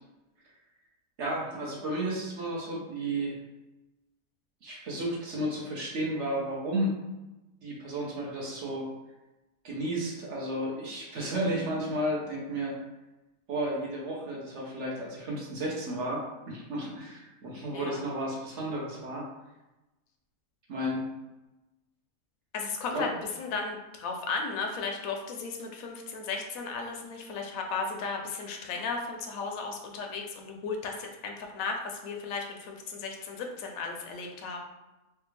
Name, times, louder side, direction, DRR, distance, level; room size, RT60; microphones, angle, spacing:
voice 1, 1.2-3.4 4.6-6.9 7.6-8.9 9.6-12.7 13.5-16.2 16.5-19.2 20.7-21.1 22.9-23.1, right 1 dB, 55° right, -3 dB, 0.9 m, -32 dB
voice 2, 22.5-34.6, left 4 dB, 70° left, 2 dB, 0.9 m, -35 dB
3.3 x 2.3 x 3.1 m, 1.0 s
omnidirectional pair, 1.7 m